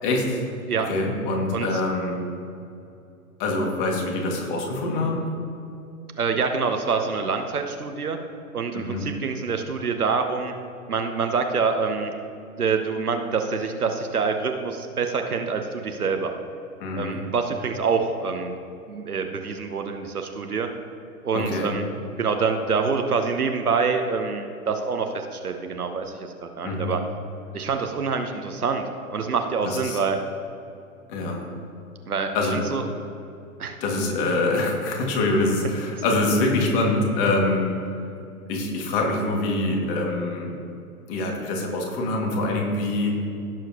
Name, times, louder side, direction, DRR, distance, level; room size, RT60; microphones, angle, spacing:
voice 1, 0.0-0.5 0.8-2.2 3.4-5.2 8.7-9.1 16.8-17.2 21.3-21.7 26.6-26.9 29.6-30.0 31.1-31.5 32.3-32.6 33.8-37.7 38.5-40.5 41.1-43.2, left 2 dB, 35° left, 0 dB, 2.2 m, -25 dB
voice 2, 6.2-8.2 8.5-10.5 10.9-12.1 12.6-16.3 17.0-18.6 18.9-20.7 21.2-21.8 22.2-27.0 27.5-30.2 32.1-32.3 32.7-32.8 33.6-33.8, right 5 dB, 80° right, 5 dB, 0.9 m, -26 dB
16.5 x 7.4 x 3.0 m, 2.7 s
figure-of-eight pair, 105°, 44 cm